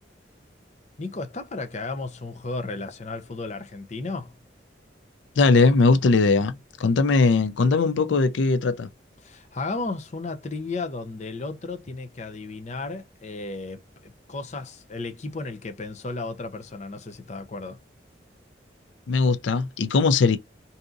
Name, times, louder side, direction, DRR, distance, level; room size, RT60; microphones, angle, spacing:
voice 1, 1.0-4.3 9.2-17.8, left 3 dB, 40° left, 0.6 m, -34 dB
voice 2, 5.4-8.9 19.1-20.4, left 4 dB, 90° left, 0.4 m, -20 dB
3.7 x 2.8 x 2.4 m
head